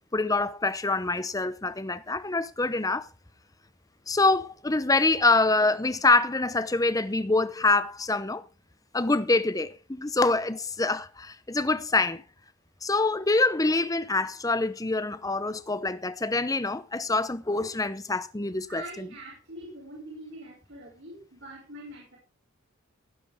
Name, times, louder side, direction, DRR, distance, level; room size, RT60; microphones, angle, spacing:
voice 1, 0.1-3.1 4.1-8.4 8.9-12.2 12.8-19.1, left 3 dB, 15° left, 0.7 m, -25 dB
voice 2, 18.7-22.2, right 1 dB, 55° right, 5.9 m, -43 dB
17.0 x 9.8 x 3.6 m
head